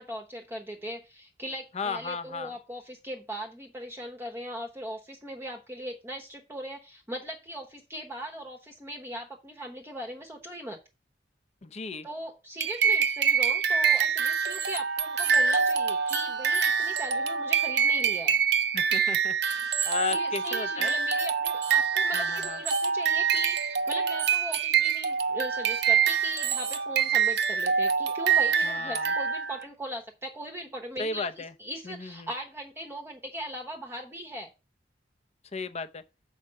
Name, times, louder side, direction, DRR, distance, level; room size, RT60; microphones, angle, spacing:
voice 1, 0.0-10.8 12.0-18.4 20.1-34.5, equal, 15° right, 0.9 m, -39 dB
voice 2, 1.7-2.5 11.6-12.1 18.7-20.9 22.1-22.6 28.6-29.1 31.0-31.5 31.8-32.3 35.5-36.0, left 4 dB, 35° left, 0.6 m, -35 dB
sound 1, 12.6-29.6, right 6 dB, 65° right, 0.8 m, -25 dB
6.5 x 4.8 x 6.6 m
head